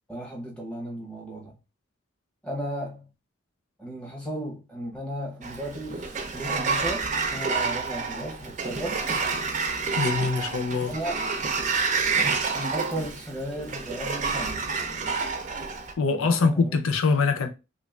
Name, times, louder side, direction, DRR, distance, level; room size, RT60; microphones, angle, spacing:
voice 1, 0.1-1.6 2.4-3.1 3.8-9.1 10.9-11.2 12.5-14.7 16.1-16.8, right 1 dB, 5° left, 0.8 m, -35 dB
Sliding door, 5.4-15.9, right 4 dB, 35° right, 0.5 m, -29 dB
voice 2, 10.0-10.9 16.0-17.5, left 4 dB, 85° left, 0.5 m, -23 dB
3.0 x 2.5 x 3.2 m
head